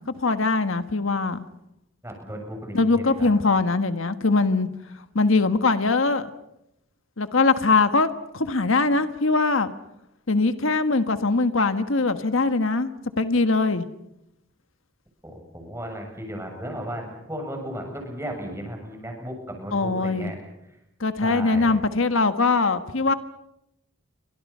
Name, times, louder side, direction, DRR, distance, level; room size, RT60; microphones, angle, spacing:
voice 1, 0.2-1.4 2.7-4.7 5.1-6.3 7.2-8.1 8.3-9.7 10.3-13.9 19.7-20.3 21.0-23.1, left 3 dB, 80° left, 9 dB, 1.5 m, -22 dB
voice 2, 2.0-3.3 15.2-20.4 20.7-20.8 21.2-21.7, equal, 15° right, 3 dB, 7.1 m, -35 dB
29.0 x 25.0 x 5.6 m, 0.84 s
head